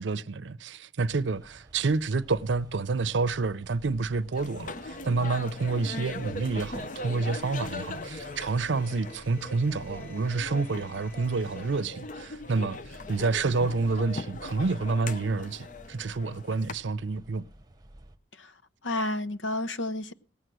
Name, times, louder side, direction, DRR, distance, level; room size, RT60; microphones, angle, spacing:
voice 1, 0.0-17.4, right 4 dB, 80° right, 0.6 m, -29 dB
sound 1, 1.1-18.2, right 1 dB, 20° right, 1.0 m, -52 dB
sound 2, 4.3-16.7, left 2 dB, 45° left, 0.8 m, -40 dB
Domestic sounds home sounds, 4.3-11.8, left 2 dB, 10° left, 6.2 m, -55 dB
voice 2, 5.7-6.1 18.3-18.6 18.8-20.1, left 1 dB, 85° left, 0.9 m, -32 dB
18.5 x 8.0 x 6.2 m
head